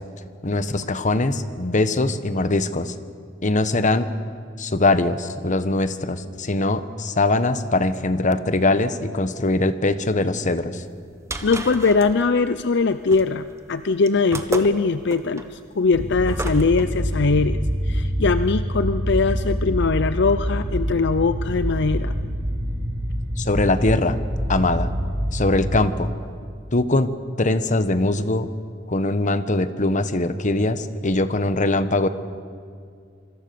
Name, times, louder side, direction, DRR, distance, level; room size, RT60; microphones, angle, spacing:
voice 1, 0.4-2.9 3.4-4.1 4.6-10.8 23.4-24.2 24.5-24.9 25.3-26.1 26.7-27.1 27.4-28.4 28.9-32.1, left 2 dB, 40° left, 11 dB, 1.2 m, -22 dB
sound 1, 10.9-16.8, right 2 dB, 15° right, 1.5 m, -34 dB
voice 2, 11.4-17.6 17.9-22.1, left 4 dB, 60° left, 12 dB, 0.6 m, -21 dB
sound 2, 15.9-25.8, equal, 75° right, 6.1 m, -26 dB
26.0 x 25.0 x 7.0 m, 2.2 s
head